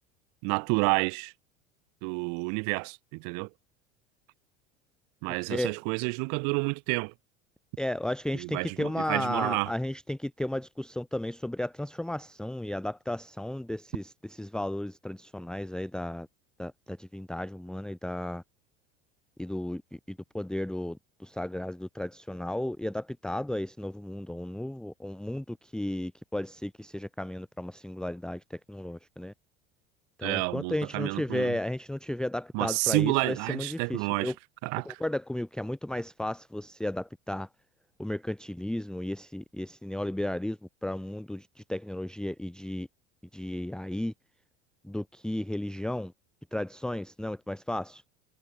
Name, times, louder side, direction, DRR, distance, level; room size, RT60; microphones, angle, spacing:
voice 1, 0.4-1.3 2.0-3.5 5.2-7.1 8.3-9.7 30.2-31.5 32.5-34.3 34.6-35.0, right 39 dB, 60° right, 0.9 m, -29 dB
voice 2, 7.8-16.3 16.6-18.4 19.4-29.3 30.2-34.3 34.8-37.5 38.0-42.9 43.3-44.1 44.8-46.1 46.5-48.0, left 1 dB, ahead, 1.0 m, -34 dB
hypercardioid pair, 85°, 34 cm